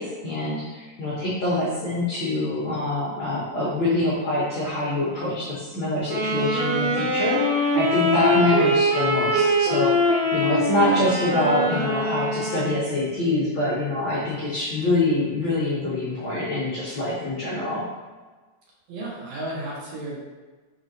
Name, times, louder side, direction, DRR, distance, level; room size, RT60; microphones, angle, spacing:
voice 1, 0.0-17.8, left 2 dB, 80° left, -8 dB, 1.0 m, -25 dB
Wind instrument woodwind instrument, 6.1-12.9, equal, 85° right, 1.1 m, -22 dB
voice 2, 18.9-20.2, right 1 dB, 70° right, -5 dB, 2.3 m, -33 dB
5.0 x 3.7 x 2.7 m, 1.3 s
omnidirectional pair, 3.5 m